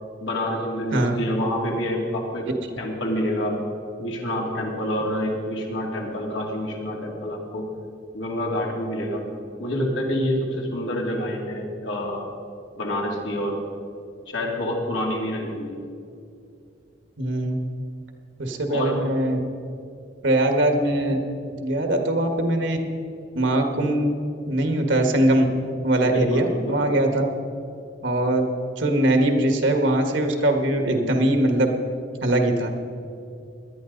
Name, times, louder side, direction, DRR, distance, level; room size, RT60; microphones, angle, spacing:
voice 1, 0.2-2.5 2.8-3.6 4.0-7.7 8.1-9.2 9.6-12.3 12.8-13.6 14.3-15.8 18.7-19.0 26.1-26.7, left 1 dB, 90° left, -1 dB, 2.7 m, -27 dB
voice 2, 17.2-17.6 18.4-19.4 20.2-21.2 21.6-22.8 23.3-24.1 24.4-25.5 25.8-27.3 28.0-28.4 28.8-31.7 32.2-32.7, right 1 dB, 75° right, 4 dB, 1.6 m, -21 dB
18.5 x 11.5 x 4.0 m, 2.5 s
head